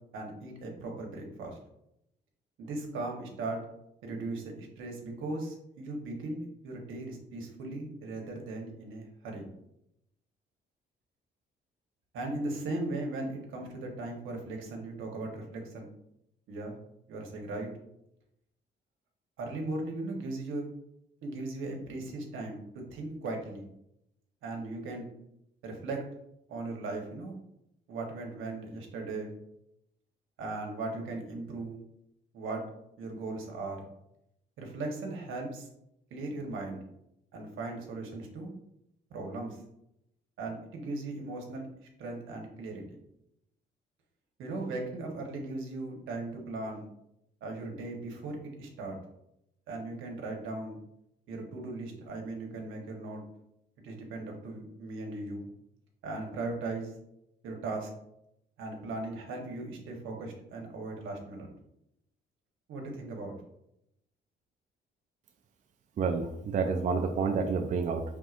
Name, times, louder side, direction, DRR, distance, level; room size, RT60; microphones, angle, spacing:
voice 1, 0.1-1.6 2.6-3.6 4.0-9.4 12.1-15.9 16.5-16.7 17.1-17.7 19.4-20.7 21.2-22.6 22.9-23.6 24.4-25.0 25.6-26.0 26.5-27.4 27.9-29.3 30.4-31.8 32.3-32.6 33.0-33.8 34.6-35.7 36.1-36.8 37.3-38.5 39.1-39.6 40.4-41.7 42.0-43.0 44.4-46.9 47.4-49.0 49.7-50.8 51.3-53.2 53.8-55.5 56.0-56.9 57.4-57.9 58.6-61.5 62.7-63.3, right 2 dB, 80° right, 1 dB, 1.1 m, -38 dB
voice 2, 66.0-68.0, right 5 dB, 40° right, 4 dB, 0.4 m, -29 dB
4.7 x 3.6 x 2.4 m, 0.80 s
cardioid pair, 90°, 20 cm